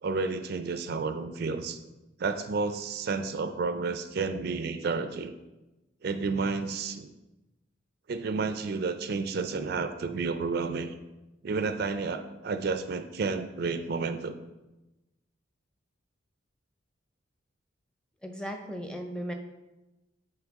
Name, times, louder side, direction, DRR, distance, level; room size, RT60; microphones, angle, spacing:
voice 1, 0.0-1.8 2.2-5.4 6.0-7.1 8.1-10.9 11.4-14.3, right 4 dB, 50° right, 9 dB, 0.4 m, -31 dB
voice 2, 18.2-19.3, equal, 5° left, 4 dB, 0.5 m, -36 dB
8.0 x 4.5 x 3.6 m, 1.0 s
head